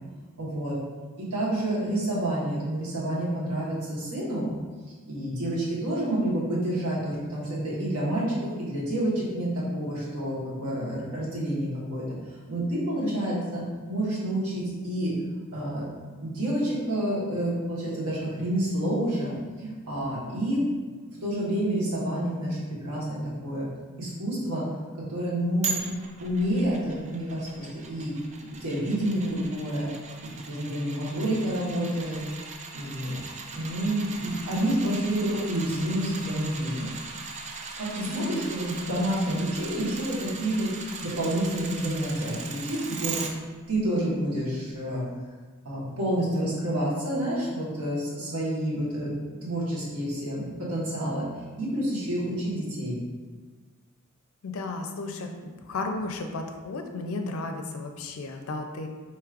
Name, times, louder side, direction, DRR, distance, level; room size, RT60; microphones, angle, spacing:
voice 1, 0.4-0.7 1.2-4.5 5.1-12.0 12.5-15.1 15.5-15.8 16.2-20.6 21.2-23.7 24.0-24.6 25.1-25.8 26.2-28.1 28.6-29.9 30.2-32.2 32.7-33.2 33.5-36.9 37.8-43.2 43.7-45.0 45.6-49.1 49.4-51.2 51.6-53.0, right 1 dB, 80° right, -7 dB, 1.3 m, -29 dB
voice 2, 13.0-13.5 38.0-38.5 54.4-55.3 55.7-58.9, left 3 dB, 65° left, 5 dB, 0.4 m, -34 dB
sound 1, 25.6-43.3 43.7-43.8, right 5 dB, 30° right, 0.3 m, -39 dB
4.6 x 3.0 x 2.5 m, 1.4 s
head